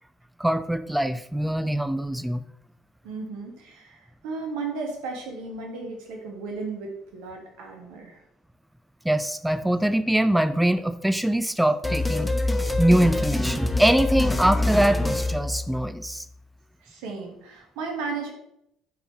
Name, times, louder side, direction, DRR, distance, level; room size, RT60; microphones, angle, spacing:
voice 1, 0.4-2.4 9.0-12.3 12.8-16.2, right 1 dB, 5° right, 12 dB, 0.5 m, -23 dB
voice 2, 3.0-8.2 16.8-18.3, right 4 dB, 65° right, 2 dB, 1.7 m, -35 dB
sound 1, 11.8-16.1, left 2 dB, 10° left, 1.0 m, -25 dB
10.0 x 5.5 x 3.2 m, 0.77 s
figure-of-eight pair, 55°, 0 cm